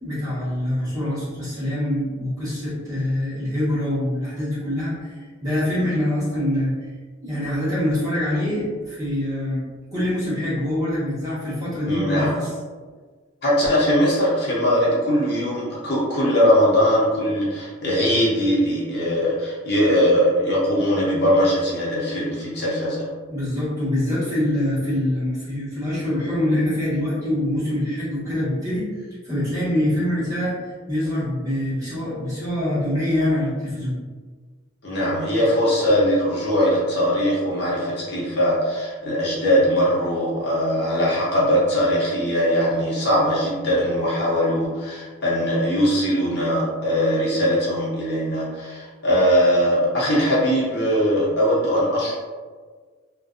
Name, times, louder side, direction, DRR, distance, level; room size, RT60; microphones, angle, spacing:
voice 1, 0.0-6.7 7.2-9.6 9.9-12.5 23.3-28.9 29.2-30.6 30.9-34.0 40.4-40.5, left 1 dB, 15° right, -11 dB, 1.1 m, -24 dB
voice 2, 11.8-12.3 13.4-23.1 34.8-52.2, equal, 55° left, -6 dB, 0.6 m, -20 dB
2.4 x 2.2 x 2.4 m, 1.5 s
head